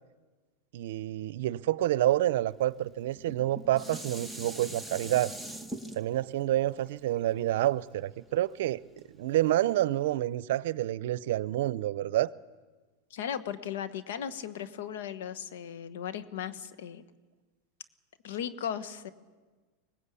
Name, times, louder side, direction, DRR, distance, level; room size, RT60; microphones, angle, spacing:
voice 1, 0.7-5.3 5.9-8.8 9.2-12.3, right 14 dB, 75° right, 0.7 m, -28 dB
Dishes pots and pans, 3.2-8.4 9.0-9.1, right 1 dB, 5° left, 1.4 m, -43 dB
voice 2, 13.1-17.0 18.2-19.1, left 9 dB, 80° left, 1.4 m, -37 dB
24.0 x 19.5 x 8.4 m
supercardioid pair, 135°, 0 cm